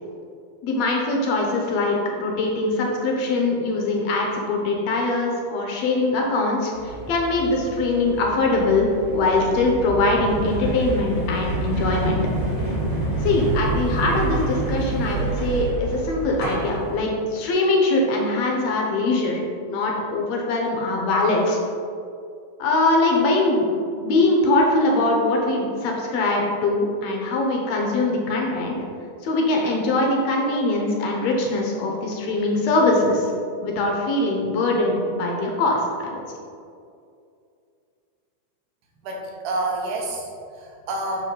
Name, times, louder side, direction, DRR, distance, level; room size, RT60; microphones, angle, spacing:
voice 1, 0.6-12.2 13.2-19.4 19.7-21.6 22.6-23.7 24.0-28.8 29.2-33.3 33.6-36.1, left 2 dB, 70° left, 0 dB, 1.8 m, -22 dB
sound 1, 6.7-17.0, right 2 dB, 35° right, 0.9 m, -28 dB
voice 2, 39.0-41.2, right 2 dB, 75° right, -1 dB, 2.5 m, -28 dB
6.9 x 5.4 x 3.8 m, 2.4 s
omnidirectional pair, 3.8 m